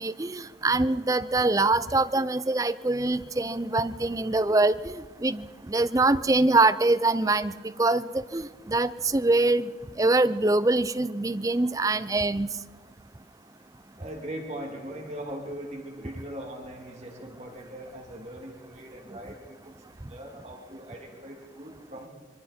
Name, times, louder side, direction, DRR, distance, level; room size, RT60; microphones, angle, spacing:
voice 1, 0.0-12.5, right 2 dB, 20° right, 14 dB, 0.5 m, -24 dB
voice 2, 13.9-22.1, right 1 dB, 40° right, 0 dB, 2.7 m, -40 dB
26.0 x 23.5 x 4.4 m, 1.5 s
head